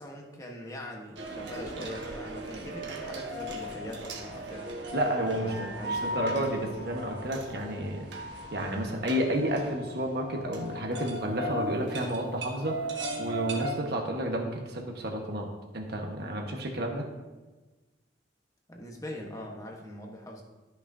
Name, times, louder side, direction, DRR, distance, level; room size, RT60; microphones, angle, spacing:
voice 1, 0.0-4.7 5.4-6.4 18.7-20.4, left 1 dB, 20° left, 0 dB, 1.2 m, -42 dB
sound 1, 1.2-13.7, equal, 80° right, 1.3 m, -37 dB
voice 2, 4.9-8.1 8.5-12.8 13.2-15.5 15.7-17.0, right 1 dB, 60° right, 1 dB, 1.3 m, -31 dB
13.0 x 5.8 x 2.7 m, 1.2 s
head